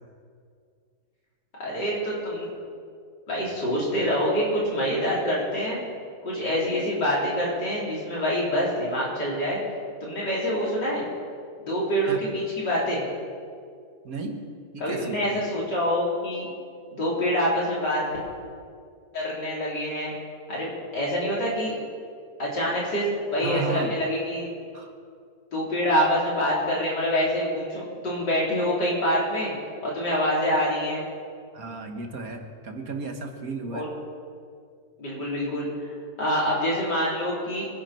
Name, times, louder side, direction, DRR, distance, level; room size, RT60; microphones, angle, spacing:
voice 1, 1.6-2.5 3.3-5.8 6.2-9.6 10.0-11.0 11.6-13.0 14.8-16.5 16.9-18.0 19.1-20.1 20.5-21.8 22.4-24.5 25.5-29.5 29.8-31.0 33.7-33.9 35.0-35.9 36.2-37.7, equal, 75° left, -5 dB, 4.7 m, -26 dB
voice 2, 14.0-14.5 14.7-15.5 23.4-24.0 24.7-24.9 31.5-33.9, right 4 dB, 55° right, 3 dB, 1.9 m, -34 dB
24.5 x 10.5 x 4.5 m, 2.2 s
omnidirectional pair, 1.8 m